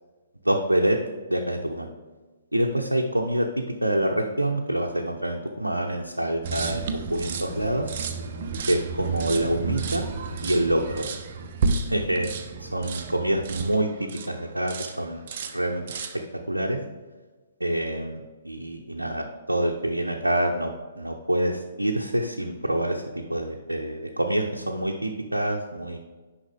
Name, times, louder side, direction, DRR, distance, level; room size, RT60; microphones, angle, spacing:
voice 1, 0.4-1.0 1.3-1.9 2.5-6.8 7.1-7.9 8.7-10.1 10.4-11.0 11.9-15.2 15.5-15.8 16.5-16.8 17.6-26.0, right 1 dB, 85° right, 0 dB, 0.7 m, -26 dB
sound 1, 6.4-14.3 14.7-15.0 15.3-16.2, right 4 dB, 40° right, 0.8 m, -31 dB
9.8 x 5.6 x 3.5 m, 1.3 s
figure-of-eight pair, 125°, 0 cm